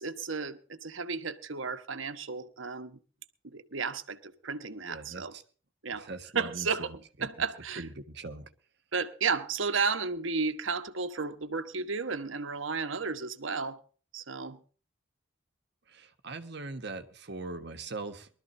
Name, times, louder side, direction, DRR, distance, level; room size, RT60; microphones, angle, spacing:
voice 1, 0.0-3.0 3.4-5.4 5.8-6.1 6.3-7.9 8.9-13.8 14.1-14.6, right 5 dB, 85° right, 1.3 m, -33 dB
voice 2, 4.8-5.4 6.0-6.7 7.8-8.5 15.9-18.3, right 3 dB, 60° right, 1.4 m, -41 dB
23.5 x 13.0 x 2.7 m
head